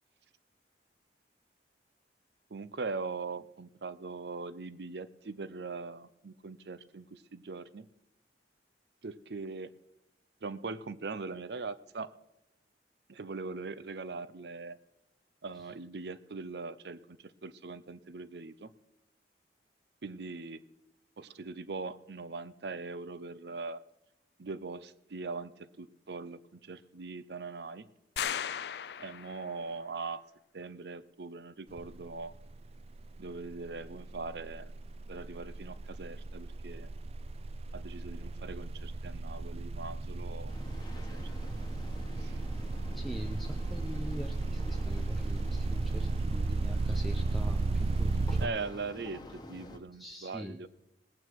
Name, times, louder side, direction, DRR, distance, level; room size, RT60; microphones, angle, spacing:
voice 1, 2.5-7.9 9.0-9.7 10.4-12.1 13.1-14.8 15.4-18.7 20.0-20.6 21.2-23.8 24.4-27.9 29.0-30.2 30.5-32.4 33.2-34.7 35.1-36.9 37.7-40.5 41.0-41.2 42.2-42.4 48.4-50.7, right 4 dB, 65° right, 16 dB, 0.6 m, -41 dB
sound 1, 28.2-29.6, left 8 dB, 65° left, 0.4 m, -36 dB
sound 2, 31.7-32.0 32.3-48.5, right 3 dB, 35° right, 0.3 m, -34 dB
sound 3, 40.5-49.8, left 1 dB, 25° left, 1.2 m, -48 dB
voice 2, 42.9-48.5 50.0-50.6, equal, ahead, 3 dB, 0.6 m, -42 dB
19.0 x 8.7 x 4.7 m, 0.88 s
head